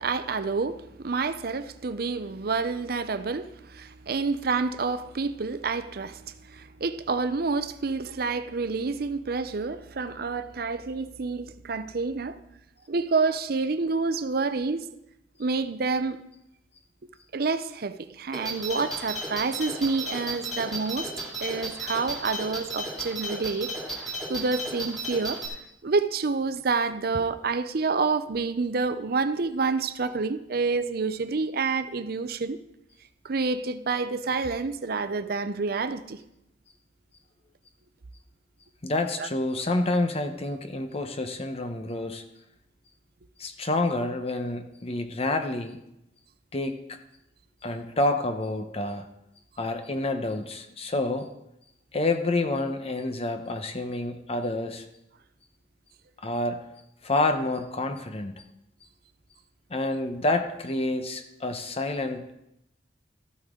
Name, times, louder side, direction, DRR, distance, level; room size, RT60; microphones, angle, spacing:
voice 1, 0.0-12.4 12.9-14.9 15.4-16.2 17.3-21.1 21.4-23.7 24.0-25.4 25.8-32.6 33.2-36.2 39.2-39.3, right 4 dB, 60° right, 0.6 m, -28 dB
sound 1, 18.3-25.5, right 1 dB, ahead, 2.4 m, -34 dB
voice 2, 38.8-42.2 43.4-45.8 46.5-47.0 47.6-49.1 49.6-51.3 51.9-54.8 56.2-56.6 57.0-58.4 59.7-62.2, left 2 dB, 35° left, 0.9 m, -28 dB
14.0 x 8.4 x 3.8 m
head